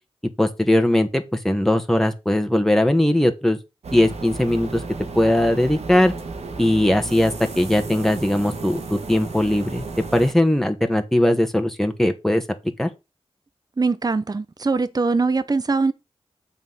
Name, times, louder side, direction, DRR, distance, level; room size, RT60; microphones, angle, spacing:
voice 1, 0.4-3.6 3.9-4.8 5.1-6.1 6.6-9.8 10.1-12.4 12.8-12.9, left 1 dB, 5° left, 1.5 m, -19 dB
sound 1, 3.8-10.3, right 3 dB, 90° right, 1.4 m, -34 dB
voice 2, 13.8-15.9, right 3 dB, 35° right, 0.7 m, -22 dB
8.9 x 4.2 x 5.5 m
cardioid pair, 50°, 11 cm